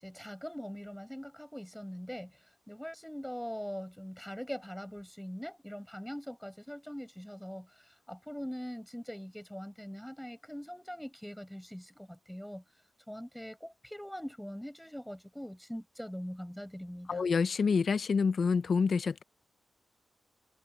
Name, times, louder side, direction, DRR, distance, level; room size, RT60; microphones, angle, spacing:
voice 1, 0.0-2.4 2.7-12.6 13.1-17.3, equal, 5° left, 6.4 m, -42 dB
voice 2, 17.1-19.2, left 5 dB, 55° left, 0.9 m, -27 dB
wide cardioid pair, 115°, 0 cm